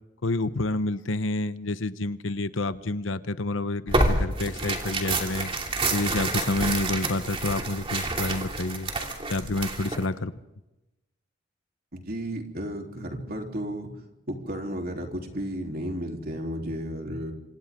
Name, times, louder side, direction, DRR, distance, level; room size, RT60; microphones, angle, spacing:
voice 1, 0.2-5.5 5.9-8.9 9.3-10.3, left 2 dB, 85° left, 12 dB, 1.0 m, -29 dB
Tearing, 3.9-10.1, right 2 dB, 30° right, 2.8 m, -28 dB
voice 2, 11.9-13.9 14.3-17.3, equal, 50° right, 2 dB, 3.5 m, -33 dB
27.0 x 26.0 x 3.7 m, 0.96 s
head